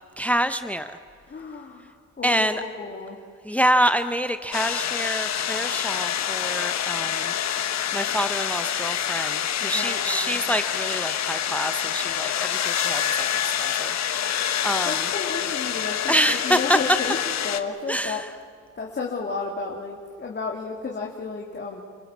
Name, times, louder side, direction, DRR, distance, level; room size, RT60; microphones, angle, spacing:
voice 1, 0.2-1.0 2.2-2.6 3.4-7.3 7.9-13.3 13.6-15.0 16.1-16.8 17.9-18.3, equal, 5° left, 10 dB, 1.0 m, -26 dB
voice 2, 1.3-3.2 9.6-10.4 14.8-18.2 18.8-21.8, left 4 dB, 35° left, -1 dB, 3.2 m, -33 dB
sound 1, 4.5-17.6, left 9 dB, 60° left, 1.4 m, -27 dB
30.0 x 18.0 x 7.5 m, 2.2 s
cardioid pair, 90°, 30 cm